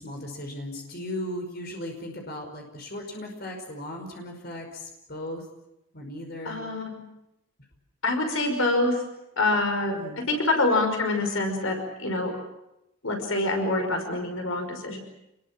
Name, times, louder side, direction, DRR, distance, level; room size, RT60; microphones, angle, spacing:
voice 1, 0.0-5.4 5.9-6.6 10.0-10.3, left 1 dB, 50° left, 3 dB, 5.3 m, -37 dB
voice 2, 6.5-7.0 8.0-9.0 9.4-10.0 10.3-12.3 13.0-15.0, left 2 dB, 75° left, 5 dB, 5.5 m, -25 dB
28.5 x 21.5 x 7.5 m, 0.88 s
head